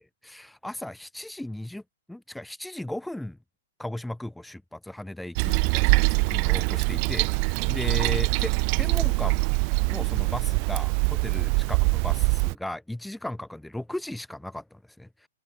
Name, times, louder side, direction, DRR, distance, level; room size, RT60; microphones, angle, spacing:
voice 1, 0.2-1.8 2.1-3.4 3.8-8.5 8.8-9.6 9.9-15.3, left 1 dB, ahead, 2.8 m, -36 dB
Toilet flush, 5.4-12.5, right 40 dB or more, 40° right, 2.3 m, -23 dB
open air
hypercardioid pair, 140°, 0 cm